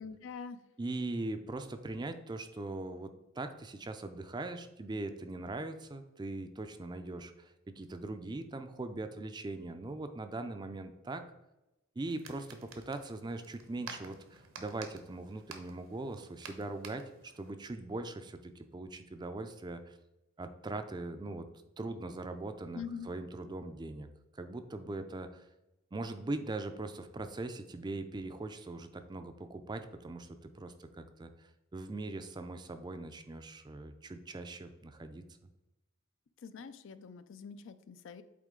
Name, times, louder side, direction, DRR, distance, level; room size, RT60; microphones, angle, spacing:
voice 1, 0.0-0.6 22.7-23.1 36.4-38.2, left 6 dB, 60° left, 12 dB, 0.4 m, -44 dB
voice 2, 0.8-11.2 12.0-20.0 20.4-21.5 21.8-24.1 24.3-25.5 25.9-35.2, right 2 dB, 20° right, 8 dB, 0.4 m, -41 dB
sound 1, 12.0-17.5, right 5 dB, 75° right, 0.9 m, -51 dB
8.4 x 3.6 x 3.7 m, 0.93 s
head